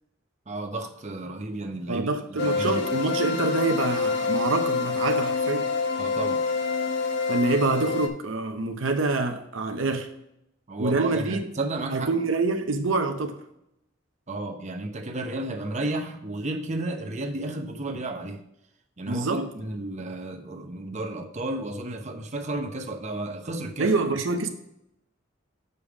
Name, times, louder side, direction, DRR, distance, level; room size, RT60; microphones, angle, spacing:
voice 1, 0.5-2.8 6.0-6.4 10.7-12.1 14.3-18.4 19.0-23.9, right 2 dB, 35° right, 0.9 m, -32 dB
voice 2, 1.9-5.7 7.3-10.1 10.8-11.4 11.9-13.4 19.1-19.4 23.8-24.5, right 3 dB, 80° right, 0.8 m, -26 dB
sound 1, 2.4-8.1, left 4 dB, 60° left, 1.0 m, -26 dB
6.9 x 5.2 x 4.8 m
head